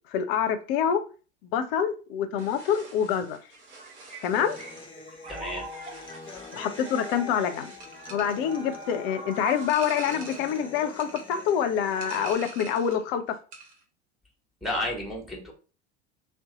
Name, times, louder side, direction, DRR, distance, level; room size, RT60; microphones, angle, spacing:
voice 1, 0.1-1.0 1.5-3.4 4.2-4.6 6.5-7.7 8.1-13.4, left 8 dB, 60° left, 9 dB, 0.6 m, -26 dB
sound 1, 2.4-13.1 13.3-13.8, right 3 dB, 70° right, 1.1 m, -46 dB
sound 2, 3.5-11.1, right 1 dB, 20° right, 0.9 m, -44 dB
Human voice / Acoustic guitar, 4.4-12.3, left 3 dB, 15° left, 0.5 m, -45 dB
voice 2, 5.3-5.6 14.6-15.5, left 1 dB, ahead, 0 dB, 1.2 m, -31 dB
2.7 x 2.2 x 3.8 m, 0.36 s
hypercardioid pair, 80°, 34 cm